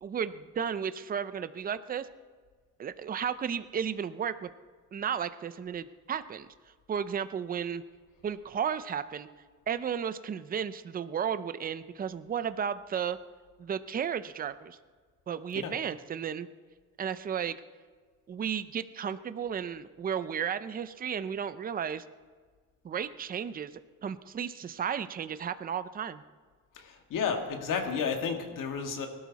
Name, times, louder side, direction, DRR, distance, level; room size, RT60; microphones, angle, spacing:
voice 1, 0.0-2.1 2.8-4.5 4.9-6.5 6.9-7.8 8.2-9.3 9.7-13.2 13.6-14.8 15.3-16.5 17.0-17.5 18.3-22.0 22.8-23.7 24.0-26.2, right 8 dB, 30° right, 13 dB, 0.5 m, -33 dB
voice 2, 26.7-29.1, left 6 dB, 85° left, 4 dB, 2.0 m, -32 dB
24.0 x 12.5 x 4.1 m, 1.5 s
cardioid pair, 170°, 31 cm